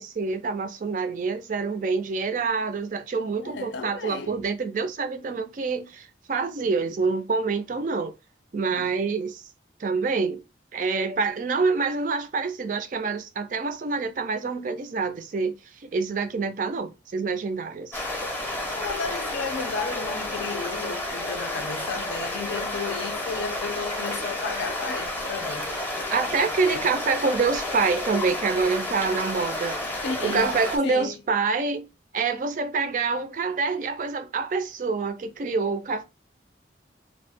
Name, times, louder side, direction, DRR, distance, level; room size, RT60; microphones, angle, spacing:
voice 1, 0.0-8.1 8.5-9.4 9.8-10.4 10.7-18.0 26.1-31.9 32.1-36.0, right 4 dB, 45° right, 0.3 m, -26 dB
voice 2, 3.4-4.3 8.7-8.8 18.7-25.7 26.7-26.9 30.0-30.6 30.8-31.2, left 5 dB, 75° left, 0.5 m, -33 dB
sound 1, 17.9-30.8, left 1 dB, 10° left, 0.6 m, -31 dB
2.2 x 2.0 x 3.3 m
head